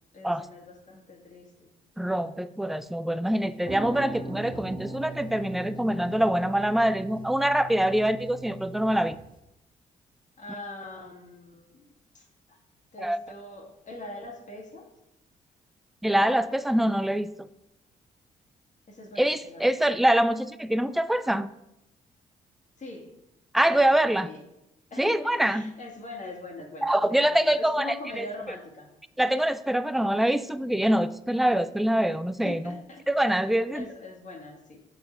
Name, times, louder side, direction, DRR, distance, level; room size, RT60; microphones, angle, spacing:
voice 1, 0.1-1.7 10.4-12.6 12.9-14.9 18.9-20.1 22.8-23.1 23.7-24.4 24.9-28.9 32.4-33.0 33.7-34.8, left 2 dB, 40° left, 0 dB, 1.7 m, -42 dB
voice 2, 2.0-9.2 13.0-13.2 16.0-17.5 19.2-21.5 23.5-24.3 25.0-25.7 26.8-28.3 29.2-32.8 33.1-33.8, right 1 dB, ahead, 14 dB, 0.3 m, -24 dB
sound 1, 3.4-9.4, right 2 dB, 25° right, 1.1 m, -40 dB
6.6 x 4.2 x 4.5 m, 0.86 s
hypercardioid pair, 40°, 19 cm